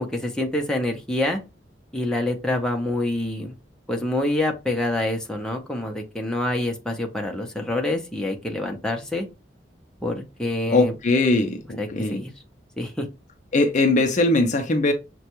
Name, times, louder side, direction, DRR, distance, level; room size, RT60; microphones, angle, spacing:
voice 1, 0.0-1.4 1.9-3.5 3.9-9.3 10.0-11.0 11.8-12.3 12.8-13.0, left 1 dB, 5° left, 0.7 m, -26 dB
voice 2, 10.7-12.2 13.5-14.9, left 2 dB, 40° left, 0.5 m, -20 dB
6.3 x 2.2 x 2.9 m
head